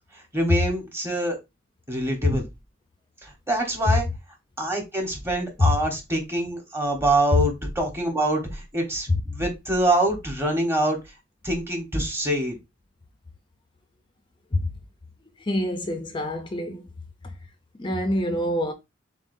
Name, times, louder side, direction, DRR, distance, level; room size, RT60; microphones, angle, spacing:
voice 1, 0.1-1.4 1.9-2.5 3.2-4.1 4.6-11.0 11.4-12.6, right 1 dB, 15° right, 1.2 m, -25 dB
voice 2, 15.4-16.8 17.2-17.3 17.8-18.7, left 1 dB, 25° left, 0.5 m, -25 dB
7.1 x 2.4 x 2.6 m
head